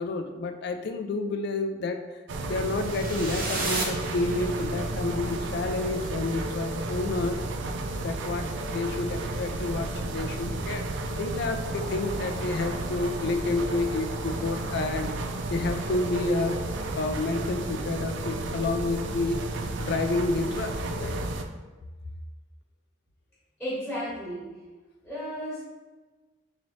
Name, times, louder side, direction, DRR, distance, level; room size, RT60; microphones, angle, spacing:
voice 1, 0.0-2.0 2.4-7.4 7.9-15.1 15.5-16.7 17.0-19.4 19.8-21.2, left 2 dB, 60° left, 7 dB, 0.3 m, -30 dB
sound 1, 2.3-21.4, right 2 dB, 70° right, 0.4 m, -32 dB
sound 2, 2.7-4.9, right 2 dB, 50° right, 0.7 m, -33 dB
sound 3, 11.5-16.9, equal, 30° left, 0.9 m, -44 dB
voice 2, 23.6-24.6 25.0-25.6, equal, ahead, -10 dB, 1.1 m, -34 dB
4.0 x 2.9 x 3.1 m, 1.3 s
head